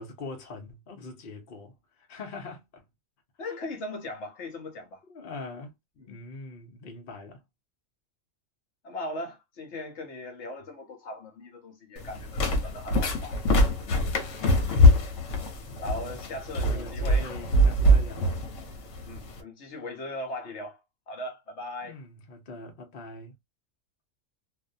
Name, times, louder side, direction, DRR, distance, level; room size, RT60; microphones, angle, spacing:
voice 1, 0.0-2.9 3.4-3.6 5.0-5.8 6.1-7.5 14.6-15.1 15.6-16.2 16.5-18.4 21.8-23.3, left 3 dB, 50° left, 0.9 m, -43 dB
voice 2, 3.4-5.0 6.0-6.1 8.8-13.4 14.0-14.2 15.8-17.3 19.0-20.8 21.1-22.0, left 1 dB, 65° left, 1.0 m, -39 dB
sound 1, 12.0-19.4, left 1 dB, 80° left, 1.1 m, -23 dB
2.6 x 2.2 x 2.5 m
omnidirectional pair, 1.3 m